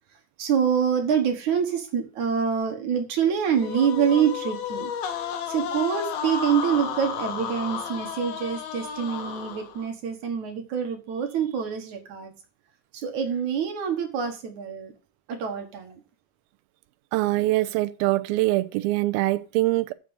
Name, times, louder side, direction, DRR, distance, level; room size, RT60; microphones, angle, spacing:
voice 1, 0.4-4.9 5.5-12.3 12.9-14.9 15.3-16.0, right 7 dB, 60° right, 2.7 m, -26 dB
sound 1, 3.5-9.9, left 8 dB, 85° left, 3.2 m, -32 dB
voice 2, 17.1-19.9, right 18 dB, 85° right, 2.5 m, -23 dB
7.7 x 6.7 x 7.9 m
omnidirectional pair, 4.3 m